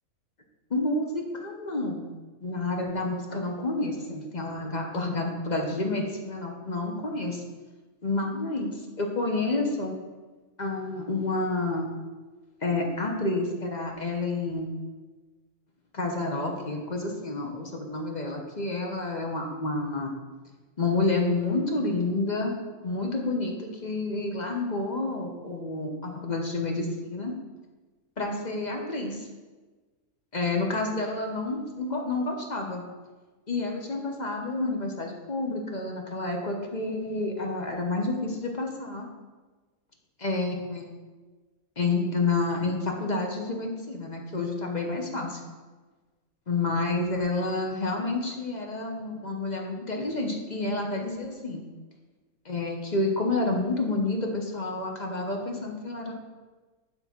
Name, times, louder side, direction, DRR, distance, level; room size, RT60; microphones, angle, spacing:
voice 1, 0.7-2.1 2.4-7.4 8.0-9.9 10.6-11.9 12.6-14.7 15.9-20.1 20.8-22.5 22.8-27.3 28.2-29.3 30.3-32.8 33.5-39.1 40.2-40.9 41.8-45.4 46.5-51.6 52.4-56.1, left 2 dB, 35° left, 1 dB, 0.9 m, -29 dB
9.6 x 3.7 x 5.9 m, 1.3 s
omnidirectional pair, 1.6 m